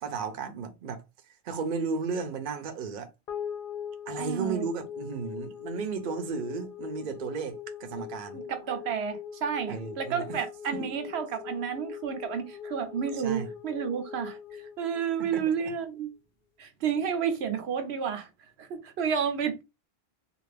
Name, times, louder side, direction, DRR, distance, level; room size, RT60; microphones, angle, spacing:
voice 1, 0.0-1.0 1.4-3.1 4.1-8.4 9.7-10.3 13.1-13.5 15.2-15.4, right 5 dB, 55° right, 0.7 m, -34 dB
sound 1, 3.3-15.8, left 8 dB, 60° left, 0.8 m, -41 dB
voice 2, 4.2-4.7 8.3-16.1 16.6-18.3 18.6-19.6, right 7 dB, 85° right, 0.9 m, -31 dB
2.5 x 2.4 x 3.2 m
omnidirectional pair, 1.1 m